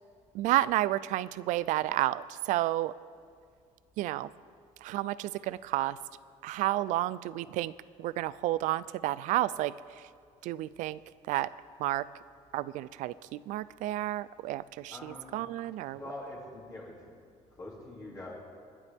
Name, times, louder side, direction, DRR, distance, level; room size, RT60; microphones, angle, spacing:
voice 1, 0.3-2.9 4.0-4.3 4.8-6.0 6.4-7.7 8.0-9.7 10.4-11.0 11.3-11.5 11.8-12.1 12.5-16.0, right 15 dB, 70° right, 18 dB, 0.4 m, -31 dB
voice 2, 14.9-15.4 15.9-16.9 17.5-18.3, left 1 dB, 25° left, -5 dB, 2.8 m, -44 dB
28.0 x 11.0 x 3.6 m, 2.1 s
cardioid pair, 175°, 14 cm